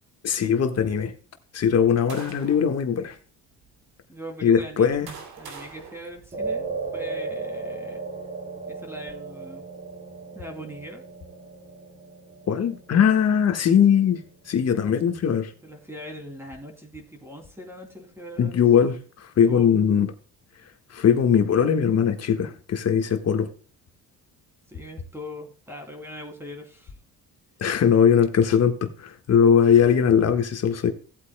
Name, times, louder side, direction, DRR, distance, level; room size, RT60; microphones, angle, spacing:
voice 1, 0.2-1.1 1.5-3.2 4.4-5.1 12.5-15.5 18.4-20.1 20.9-23.5 27.6-30.9, left 7 dB, 45° left, 1.5 m, -20 dB
sound 1, 1.6-2.8 3.5-3.6 4.5-6.9, right 5 dB, 80° right, 2.8 m, -44 dB
voice 2, 4.1-5.0 5.4-8.0 8.7-9.7 10.3-11.0 14.8-14.9 15.6-19.0 19.5-19.7 24.7-26.9, equal, 5° right, 2.9 m, -41 dB
sound 2, 6.3-14.8, right 4 dB, 20° right, 3.2 m, -36 dB
17.0 x 8.4 x 2.2 m
cardioid pair, 125°, 36 cm